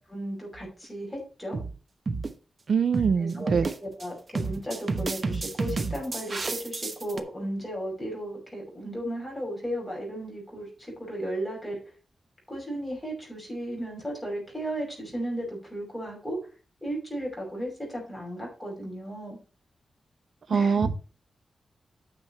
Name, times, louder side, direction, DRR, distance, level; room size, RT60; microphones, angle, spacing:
voice 1, 0.1-1.6 3.2-11.7 12.5-16.4 16.8-19.4 20.5-20.9, right 1 dB, 5° left, -2 dB, 5.9 m, -35 dB
sound 1, 0.5-0.8 1.5-1.8 2.1-2.3 2.9-3.2 3.5-4.1 4.3-7.2, right 3 dB, 35° right, 1.0 m, -30 dB
voice 2, 2.7-3.7 20.5-20.9, right 6 dB, 55° right, 12 dB, 0.5 m, -23 dB
9.7 x 6.2 x 4.4 m, 0.35 s
wide cardioid pair, 165°, 0 cm